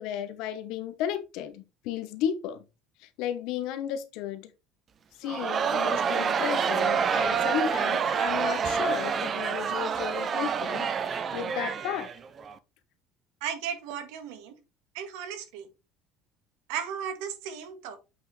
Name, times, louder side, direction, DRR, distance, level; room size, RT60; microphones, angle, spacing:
voice 1, 0.0-2.6 3.0-4.5 5.2-12.1, left 10 dB, 60° left, 1.0 m, -34 dB
Crowd, 5.3-12.5, right 6 dB, 25° right, 0.5 m, -27 dB
voice 2, 13.4-14.6 14.9-15.7 16.7-18.0, right 8 dB, 85° right, 1.6 m, -35 dB
8.1 x 5.0 x 3.2 m
cardioid pair, 175°, 0 cm